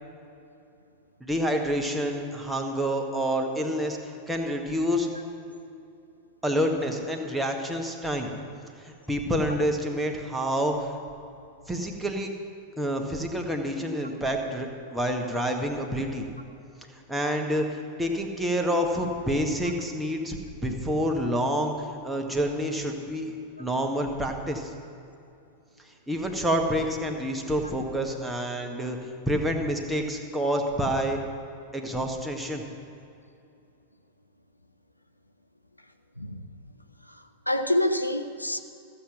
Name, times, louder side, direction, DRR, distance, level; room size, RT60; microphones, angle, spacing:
voice 1, 1.2-5.1 6.4-8.3 8.8-10.9 11.7-12.3 12.8-16.2 17.1-20.4 20.6-23.3 23.6-24.7 26.1-31.2 31.7-32.6, equal, 5° right, 2 dB, 1.4 m, -28 dB
voice 2, 37.5-38.6, left 1 dB, 85° left, 7 dB, 0.6 m, -27 dB
14.5 x 7.5 x 6.0 m, 2.6 s
figure-of-eight pair, 90°, 0 cm